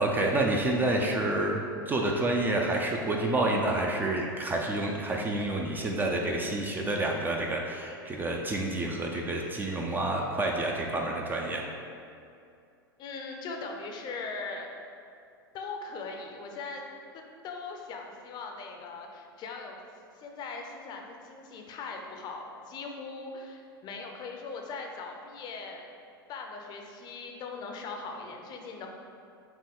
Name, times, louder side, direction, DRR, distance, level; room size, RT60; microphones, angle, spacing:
voice 1, 0.0-1.6 1.9-11.6, right 2 dB, 15° right, 0 dB, 0.4 m, -28 dB
voice 2, 13.0-14.7 15.5-16.8 17.1-19.8 20.1-25.9 26.3-28.9, left 4 dB, 35° left, 2 dB, 0.6 m, -40 dB
5.8 x 2.2 x 3.6 m, 2.5 s
hypercardioid pair, 95°, 12 cm